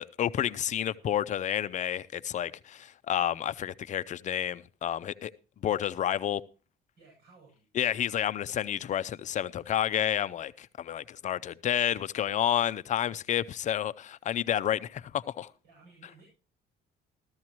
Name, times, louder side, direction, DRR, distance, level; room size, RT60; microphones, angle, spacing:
voice 1, 0.0-5.3 5.6-6.4 7.8-15.5, left 10 dB, 45° left, 0.6 m, -30 dB
voice 2, 7.0-7.7 15.6-16.3, right 3 dB, 70° right, 7.8 m, -57 dB
14.0 x 14.0 x 3.0 m
cardioid pair, 110°, 17 cm